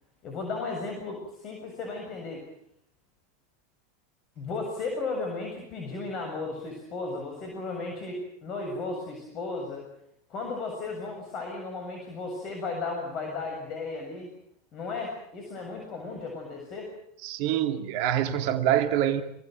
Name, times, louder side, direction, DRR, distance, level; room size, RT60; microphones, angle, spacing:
voice 1, 0.2-2.4 4.4-9.9 10.3-14.3 14.7-16.9, left 3 dB, 40° left, 7.2 m, -35 dB
voice 2, 17.2-19.2, right 11 dB, 55° right, 2.3 m, -25 dB
28.0 x 18.5 x 9.3 m
hypercardioid pair, 90°, 0 cm